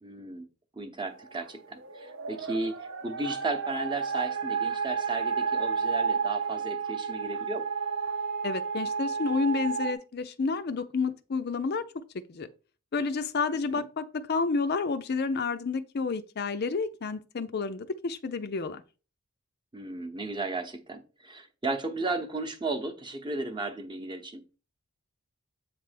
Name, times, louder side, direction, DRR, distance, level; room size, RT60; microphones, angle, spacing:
voice 1, 0.0-0.5 0.8-7.6 13.6-13.9 19.7-24.4, right 2 dB, 20° right, 0.8 m, -35 dB
sound 1, 1.1-9.9, right 6 dB, 60° right, 0.8 m, -31 dB
voice 2, 8.4-11.8 12.3-12.5 12.9-18.8, left 4 dB, 45° left, 0.5 m, -30 dB
8.0 x 3.3 x 5.1 m
head